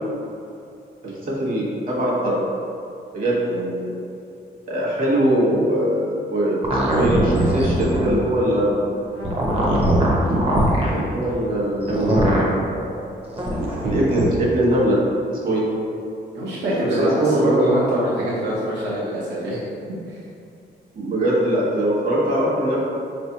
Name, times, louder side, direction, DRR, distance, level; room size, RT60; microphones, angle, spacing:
voice 1, 1.0-2.4 3.1-4.0 4.7-8.8 10.9-12.9 13.5-15.0 15.3-15.7 16.9-17.6 20.9-22.8, right 1 dB, 50° right, -6 dB, 1.3 m, -22 dB
sound 1, 6.6-8.2 9.2-10.9 11.8-12.5 13.3-14.3, right 1 dB, 30° right, 0.8 m, -20 dB
voice 2, 16.3-19.6 20.1-20.2, right 1 dB, 75° right, -8 dB, 0.9 m, -24 dB
5.0 x 3.3 x 2.8 m, 2.6 s
cardioid pair, 135°, 18 cm